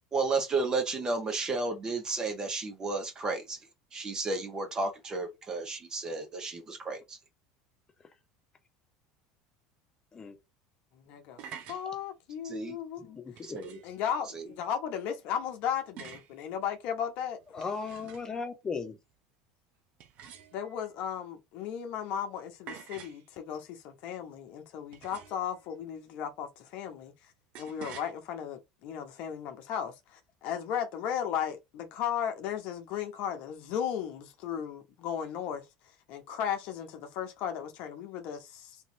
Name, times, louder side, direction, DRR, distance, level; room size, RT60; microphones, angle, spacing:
voice 1, 0.1-3.6 3.9-7.2 12.4-12.8 13.4-13.8 14.3-14.4, right 3 dB, 30° right, 1.3 m, -32 dB
voice 2, 11.1-11.4 11.7-13.2 13.8-17.4 20.5-27.1 27.6-35.6 36.1-38.8, left 8 dB, 65° left, 0.9 m, -35 dB
sound 1, 11.2-11.9 13.4-14.0 16.0-16.4 17.4-18.4 20.0-20.8 22.7-23.2 24.9-25.5 27.5-28.1, right 8 dB, 55° right, 0.8 m, -47 dB
voice 3, 13.2-13.6 17.5-19.0, left 5 dB, 25° left, 1.2 m, -36 dB
3.7 x 2.9 x 2.7 m
hypercardioid pair, 90°, 2 cm